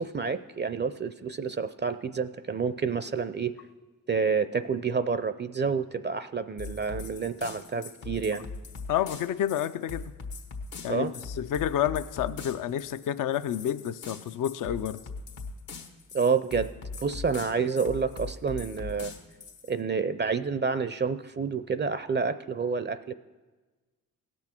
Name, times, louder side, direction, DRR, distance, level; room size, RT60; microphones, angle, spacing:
voice 1, 0.0-3.5 4.1-8.4 10.9-11.1 16.1-16.7 17.0-19.1 19.7-23.1, right 5 dB, 30° right, 13 dB, 0.5 m, -29 dB
sound 1, 6.6-19.7, left 4 dB, 80° left, 1.4 m, -41 dB
voice 2, 8.9-10.1 10.8-15.0, left 10 dB, 65° left, 12 dB, 0.5 m, -29 dB
17.5 x 6.3 x 4.4 m, 1.3 s
supercardioid pair, 45°, 35 cm